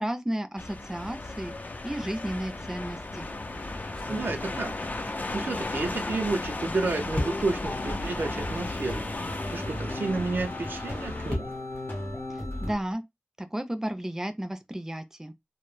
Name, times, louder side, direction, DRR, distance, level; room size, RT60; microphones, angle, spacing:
voice 1, 0.0-1.5 1.8-3.3 12.6-13.0 13.4-15.3, right 1 dB, 15° right, 0.4 m, -33 dB
sound 1, 0.6-11.4, left 2 dB, 55° left, 0.4 m, -35 dB
sound 2, 3.9-6.7 7.1-7.7 8.4-8.5 8.9-9.0 10.6-12.9, left 1 dB, 35° left, 0.8 m, -38 dB
voice 2, 4.1-4.7 5.3-9.0 9.5-11.5, right 3 dB, 80° right, 0.5 m, -30 dB
sound 3, 7.1-12.7, left 1 dB, 85° left, 0.7 m, -36 dB
2.1 x 2.0 x 3.1 m
wide cardioid pair, 60°, 4 cm